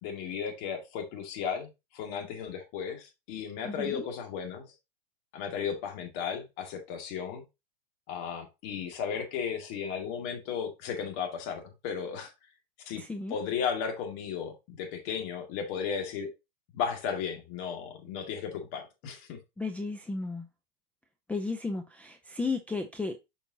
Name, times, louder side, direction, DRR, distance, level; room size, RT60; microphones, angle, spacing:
voice 1, 0.0-4.7 5.3-7.4 8.1-12.3 12.9-13.0 13.3-16.3 16.7-19.4, left 7 dB, 50° left, 2.3 m, -35 dB
voice 2, 3.6-4.1 13.0-13.3 19.6-20.5 21.3-23.2, left 3 dB, 5° left, 0.4 m, -34 dB
7.3 x 5.4 x 2.8 m
hypercardioid pair, 130°, 30 cm